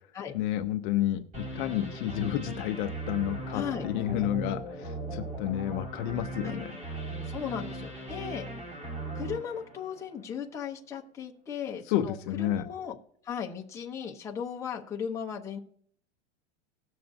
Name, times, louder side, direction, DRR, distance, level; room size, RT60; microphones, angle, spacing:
voice 1, 0.3-6.7 11.9-12.7, left 12 dB, 45° left, 7 dB, 0.6 m, -30 dB
sound 1, 1.3-10.4, right 2 dB, 20° right, 3.6 m, -38 dB
voice 2, 3.5-3.8 6.4-6.6 7.2-8.4 9.1-12.9 13.2-15.6, left 7 dB, 10° left, -1 dB, 0.7 m, -36 dB
19.0 x 6.8 x 2.6 m, 0.62 s
supercardioid pair, 165°, 36 cm